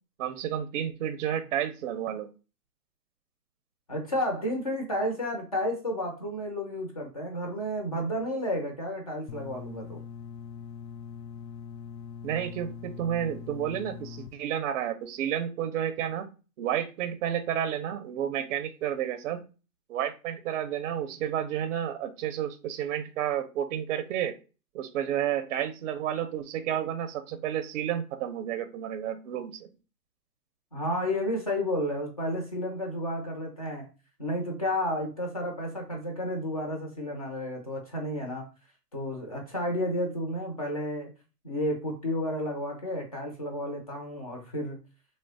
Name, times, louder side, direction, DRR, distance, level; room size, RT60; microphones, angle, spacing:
voice 1, 0.2-2.3 12.2-16.3 16.6-19.4 19.9-24.3 24.7-29.7, right 10 dB, 50° right, 10 dB, 0.5 m, -31 dB
voice 2, 3.9-10.0 30.7-33.9 34.2-38.4 38.9-41.1 41.4-44.8, left 1 dB, 25° left, 1 dB, 0.3 m, -31 dB
sound 1, 9.3-14.3, left 7 dB, 80° left, 0.6 m, -42 dB
3.1 x 2.0 x 3.8 m, 0.33 s
hypercardioid pair, 135°, 49 cm